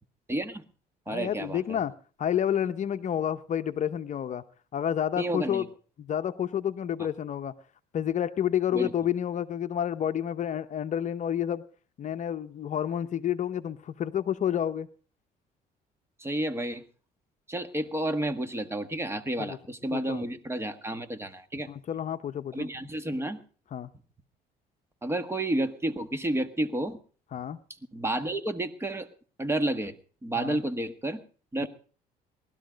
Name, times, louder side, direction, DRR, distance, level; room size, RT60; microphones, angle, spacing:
voice 1, 0.3-0.6 1.1-1.8 5.2-5.6 8.7-8.9 16.2-16.8 17.5-21.7 22.5-23.4 25.0-27.0 27.9-29.1 29.4-30.0 30.2-31.2 31.5-31.7, right 1 dB, 15° right, 10 dB, 1.5 m, -31 dB
voice 2, 1.1-1.9 2.2-4.4 4.7-5.6 6.0-7.5 7.9-11.6 12.0-14.9 19.4-19.6 19.9-20.2 21.7-22.7 23.7-23.9 27.3-27.6 30.4-30.6 31.6-31.7, left 9 dB, 45° left, 10 dB, 0.8 m, -29 dB
19.5 x 12.5 x 5.1 m, 0.40 s
cardioid pair, 110°, 17 cm